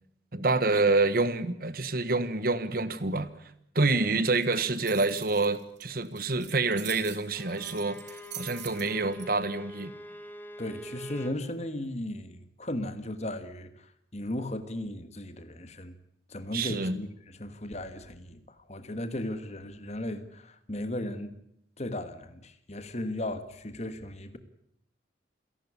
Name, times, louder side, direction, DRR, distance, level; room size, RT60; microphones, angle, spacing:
voice 1, 0.3-3.3 3.7-8.0 8.4-9.9 16.5-17.0, right 3 dB, 55° right, 1.3 m, -27 dB
sound 1, 4.4-9.3, right 10 dB, 85° right, 4.3 m, -44 dB
Bowed string instrument, 7.3-11.4, right 1 dB, 10° left, 1.7 m, -44 dB
voice 2, 10.6-13.7 14.1-15.9 16.3-21.3 21.8-24.4, left 1 dB, 40° left, 1.5 m, -36 dB
28.0 x 11.5 x 9.8 m
head